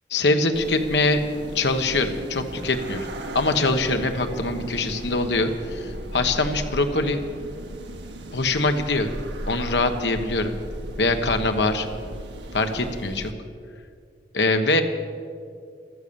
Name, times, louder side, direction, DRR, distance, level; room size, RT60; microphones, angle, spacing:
voice 1, 0.1-1.2 1.5-3.1 3.3-7.2 8.3-9.1 9.5-10.5 11.0-11.9 12.5-13.3 14.3-14.8, left 2 dB, 80° left, 7 dB, 1.3 m, -23 dB
sound 1, 0.5-13.3, right 1 dB, 85° right, 1.3 m, -36 dB
14.0 x 13.5 x 7.1 m, 2.2 s
head